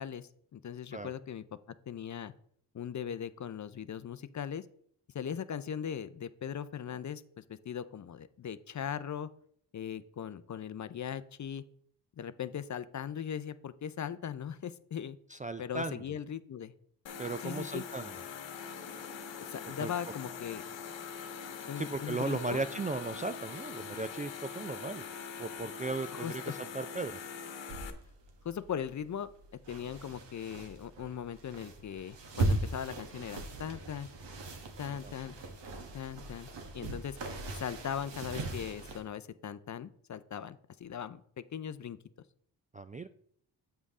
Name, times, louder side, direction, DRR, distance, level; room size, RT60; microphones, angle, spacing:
voice 1, 0.0-1.4 1.9-2.3 2.7-4.7 5.1-9.3 9.7-11.6 12.2-15.2 15.6-16.7 17.4-17.8 19.3-20.6 21.7-22.6 26.1-26.6 28.4-29.3 29.7-34.1 34.8-35.4 35.9-36.5 36.7-37.2 37.5-41.2 41.5-42.0, left 8 dB, 40° left, 14 dB, 0.5 m, -39 dB
voice 2, 15.3-16.0 17.2-18.1 19.8-19.9 21.8-25.0 25.4-27.2 35.0-35.1 42.7-43.1, right 3 dB, 20° right, 11 dB, 0.3 m, -36 dB
sound 1, 17.1-27.9, left 6 dB, 70° left, 1.1 m, -43 dB
sound 2, 27.7-39.0, right 2 dB, 65° right, 1.5 m, -39 dB
8.2 x 5.2 x 3.6 m, 0.63 s
supercardioid pair, 50°, 46 cm